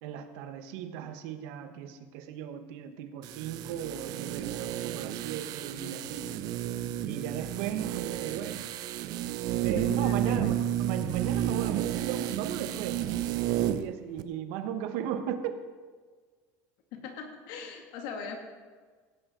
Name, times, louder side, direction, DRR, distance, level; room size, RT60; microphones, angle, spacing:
voice 1, 0.0-6.3 7.1-8.7 9.6-13.1 13.6-15.6, right 9 dB, 75° right, 8 dB, 1.1 m, -36 dB
sound 1, 3.2-13.9 14.2-14.3, right 11 dB, 60° right, 0.6 m, -31 dB
voice 2, 9.8-10.5 16.9-18.4, left 6 dB, 70° left, 3 dB, 2.2 m, -40 dB
16.5 x 9.0 x 3.8 m, 1.5 s
cardioid pair, 135°, 8 cm